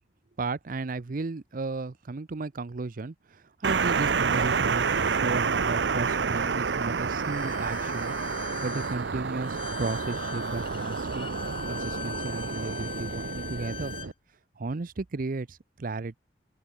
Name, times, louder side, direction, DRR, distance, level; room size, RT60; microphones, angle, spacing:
voice 1, 0.4-8.1 8.6-11.3 11.7-13.9 14.6-16.2, right 3 dB, 50° right, 0.6 m, -34 dB
sound 1, 3.6-14.1, right 5 dB, 90° right, 0.8 m, -29 dB
Bowed string instrument, 7.2-14.1, left 6 dB, 30° left, 0.8 m, -41 dB
open air
head